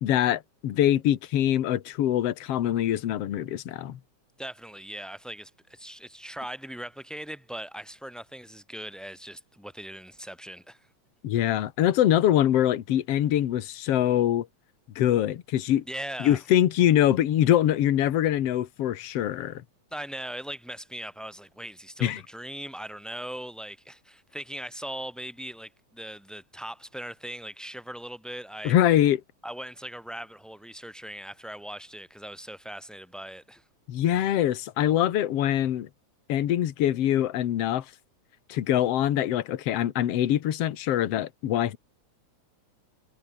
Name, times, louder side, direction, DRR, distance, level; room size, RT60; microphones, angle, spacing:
voice 1, 0.0-4.0 11.2-14.5 15.0-15.8 16.2-19.6 22.0-22.2 28.6-29.2 33.9-35.9 36.3-37.9 38.5-41.8, left 11 dB, 60° left, 2.2 m, -24 dB
voice 2, 4.4-10.9 15.9-16.4 19.9-28.7 29.4-33.6, equal, ahead, 6.4 m, -40 dB
omnidirectional pair, 3.4 m